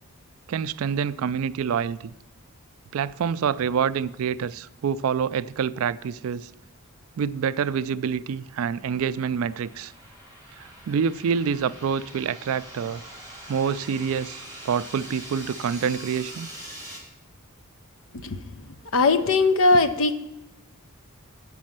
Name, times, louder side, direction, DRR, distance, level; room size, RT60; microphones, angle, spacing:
voice 1, 0.5-2.1 2.9-6.5 7.2-9.9 10.6-13.0 13.5-16.5, right 7 dB, 65° right, 0.3 m, -27 dB
sound 1, 8.0-17.0, right 1 dB, 10° left, 2.8 m, -44 dB
voice 2, 18.9-20.1, left 3 dB, 65° left, 0.7 m, -19 dB
8.1 x 5.3 x 7.4 m
head